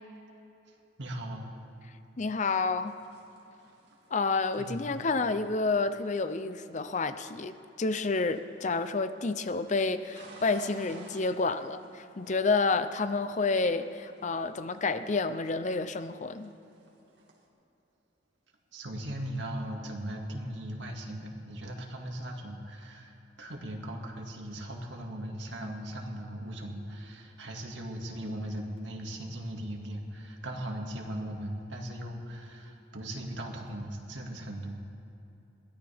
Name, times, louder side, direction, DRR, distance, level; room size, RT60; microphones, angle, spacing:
voice 1, 1.0-1.5 4.6-4.9 18.7-34.8, right 1 dB, 90° right, 1 dB, 2.1 m, -38 dB
voice 2, 2.2-2.9 4.1-16.5, left 3 dB, 40° left, 11 dB, 0.6 m, -29 dB
sound 1, 2.9-7.8 8.1-9.0 9.3-12.8 13.1-15.5 15.8-17.5, right 2 dB, 70° right, 2.4 m, -55 dB
22.0 x 17.0 x 3.5 m, 3.0 s
head